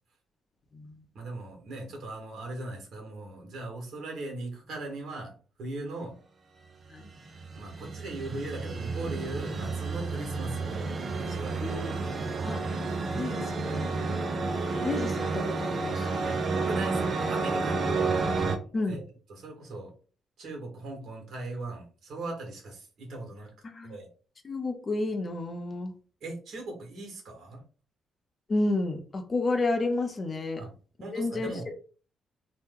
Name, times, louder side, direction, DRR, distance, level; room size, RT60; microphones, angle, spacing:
voice 1, 1.1-5.3 5.6-6.2 7.5-11.7 16.2-18.2 18.9-19.0 19.3-19.9 20.4-23.5 23.8-24.1 26.2-27.6 30.6-30.7 31.0-31.7, right 2 dB, 60° right, 1 dB, 1.4 m, -39 dB
sound 1, 7.0-18.6, right 4 dB, 40° right, 0.5 m, -31 dB
voice 2, 11.6-12.0 12.4-12.6 13.1-13.9 14.7-16.3 18.7-19.0 23.6-24.0 24.4-25.9 28.5-30.6 31.1-31.7, left 2 dB, 30° left, 5 dB, 0.6 m, -31 dB
2.9 x 2.2 x 3.6 m, 0.38 s
cardioid pair, 125°, 0 cm